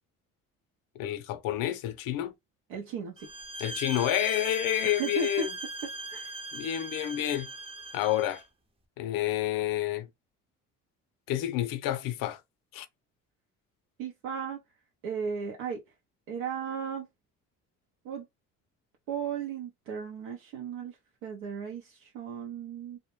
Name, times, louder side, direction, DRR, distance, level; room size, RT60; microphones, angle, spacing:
voice 1, 1.0-2.3 3.6-5.5 6.5-7.5 7.9-8.4 9.0-10.1 11.3-12.4 12.7-12.9, left 12 dB, 70° left, 0.6 m, -29 dB
voice 2, 2.7-3.3 4.8-5.5 6.1-6.3 14.0-14.6 15.0-15.8 16.3-17.1 18.0-18.3 19.1-21.0 21.2-23.0, right 6 dB, 85° right, 0.6 m, -35 dB
sound 1, 3.2-8.4, right 2 dB, 15° right, 0.6 m, -39 dB
2.1 x 2.1 x 3.0 m
supercardioid pair, 70°, 35 cm